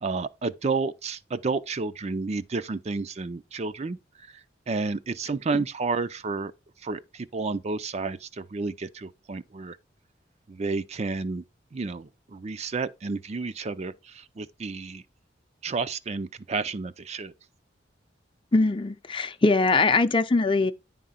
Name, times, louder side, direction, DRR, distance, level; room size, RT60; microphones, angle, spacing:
voice 1, 0.0-4.0 4.7-6.5 6.8-9.8 10.5-11.4 11.7-15.0 15.6-17.3, right 4 dB, 35° right, 0.5 m, -31 dB
voice 2, 18.5-20.7, left 3 dB, 30° left, 0.6 m, -22 dB
10.0 x 3.7 x 5.6 m
head